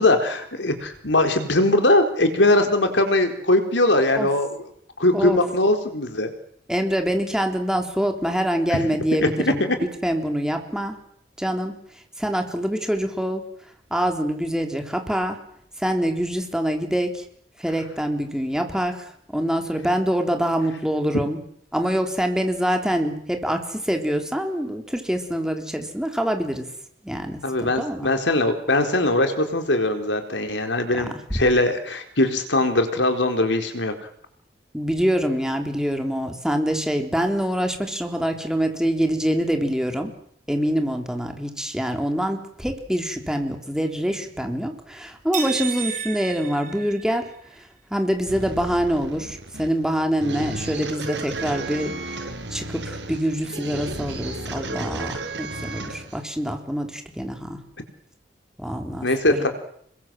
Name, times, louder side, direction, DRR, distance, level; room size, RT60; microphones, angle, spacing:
voice 1, 0.0-4.6 5.0-6.3 8.7-8.9 9.2-9.8 27.4-33.9 59.0-59.5, left 2 dB, 80° left, 6 dB, 4.2 m, -21 dB
voice 2, 6.7-11.0 11.4-11.8 12.2-13.4 13.9-15.4 15.8-17.2 17.6-21.4 21.7-26.7 27.0-28.1 31.0-31.1 31.3-31.4 34.7-40.1 40.5-47.3 47.6-47.7 47.9-52.0 52.5-57.6 58.6-59.5, equal, 5° right, 4 dB, 3.6 m, -25 dB
sound 1, 45.3-47.5, right 7 dB, 45° right, 5.8 m, -32 dB
sound 2, 48.3-56.2, right 2 dB, 80° right, 6.6 m, -33 dB
28.5 x 22.5 x 7.7 m, 0.66 s
head